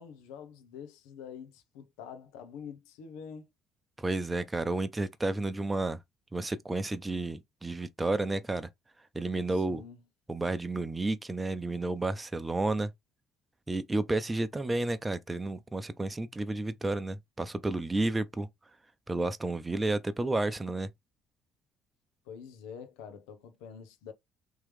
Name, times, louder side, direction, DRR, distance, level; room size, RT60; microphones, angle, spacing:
voice 1, 0.0-3.5 9.5-10.0 22.2-24.1, left 7 dB, 75° left, 0.9 m, -46 dB
voice 2, 4.0-6.0 6.3-8.7 9.1-9.8 10.3-12.9 13.7-18.5 19.1-20.9, right 2 dB, 20° right, 0.7 m, -31 dB
3.7 x 3.1 x 3.2 m
hypercardioid pair, 55°, 0 cm